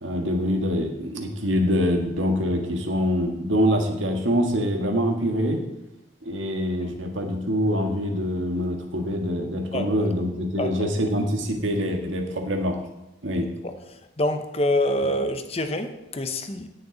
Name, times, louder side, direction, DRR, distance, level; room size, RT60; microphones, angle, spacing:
voice 1, 0.0-5.6 6.2-12.8 13.2-13.5, equal, 85° right, 1.7 m, -25 dB
voice 2, 9.7-10.1 10.6-10.9 13.6-13.7 14.2-16.7, left 1 dB, 30° left, 0.8 m, -26 dB
17.0 x 6.6 x 3.9 m
head